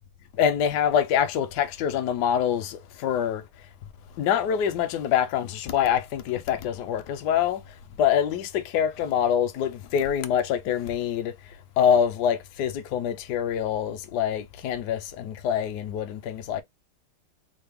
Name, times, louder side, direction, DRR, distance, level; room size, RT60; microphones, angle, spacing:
voice 1, 0.4-3.4 4.2-7.6 8.0-11.3 11.8-16.6, left 9 dB, 70° left, 1.0 m, -25 dB
3.9 x 2.1 x 3.4 m
omnidirectional pair, 2.3 m